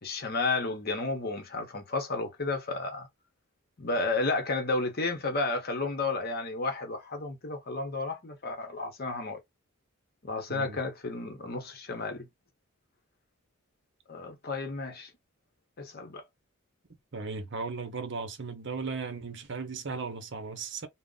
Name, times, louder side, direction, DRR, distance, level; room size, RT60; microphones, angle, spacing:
voice 1, 0.0-3.1 3.8-9.4 10.2-12.3 14.1-15.1 15.8-16.2, left 3 dB, 45° left, 0.8 m, -32 dB
voice 2, 17.1-20.9, right 4 dB, 55° right, 0.7 m, -36 dB
2.5 x 2.1 x 3.7 m
head